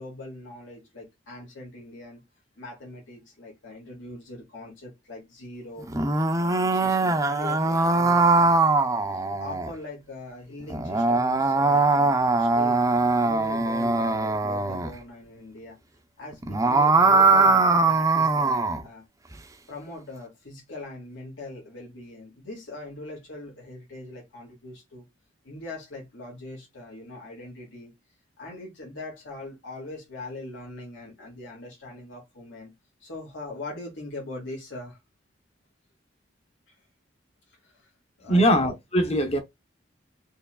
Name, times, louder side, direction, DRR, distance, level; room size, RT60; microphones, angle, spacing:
voice 1, 0.0-2.2 2.6-5.9 6.4-8.5 9.1-12.8 13.2-15.8 16.2-19.0 19.7-25.0 25.4-27.9 28.4-32.7 33.0-35.0 36.7-36.8 37.6-37.9 38.2-38.5, left 2 dB, 80° left, 1.9 m, -41 dB
sound 1, 5.8-9.7 10.7-14.9 16.3-18.8, right 3 dB, 15° right, 0.5 m, -21 dB
voice 2, 38.3-39.4, equal, 35° left, 0.8 m, -21 dB
4.5 x 3.1 x 2.2 m
head